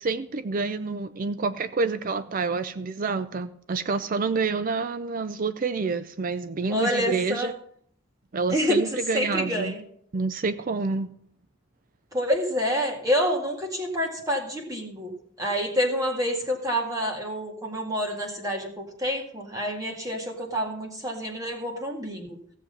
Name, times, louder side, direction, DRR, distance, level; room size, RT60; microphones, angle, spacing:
voice 1, 0.0-7.5 8.3-9.7 10.1-11.1, right 4 dB, 45° right, 12 dB, 0.4 m, -28 dB
voice 2, 6.7-7.5 8.5-9.8 12.1-15.1 15.4-22.4, equal, 20° right, 0 dB, 2.0 m, -27 dB
15.5 x 7.4 x 5.5 m, 0.65 s
head